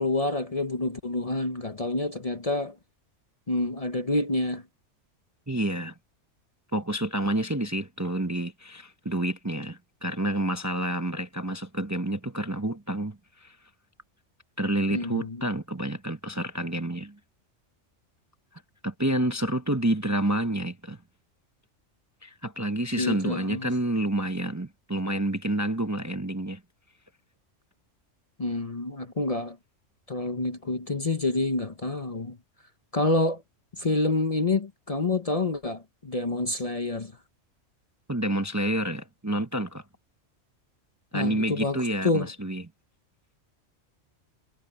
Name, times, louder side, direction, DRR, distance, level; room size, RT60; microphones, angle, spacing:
voice 1, 0.0-2.8 3.5-4.6 14.9-15.4 23.0-23.7 28.4-29.6 30.1-32.4 32.9-33.4 33.8-37.1 41.1-42.3, left 2 dB, 30° left, 0.9 m, -28 dB
voice 2, 5.5-5.9 6.7-13.6 14.6-17.2 18.8-21.0 22.2-26.6 38.1-39.8 41.1-42.6, right 1 dB, 15° right, 0.8 m, -29 dB
omnidirectional pair, 1.3 m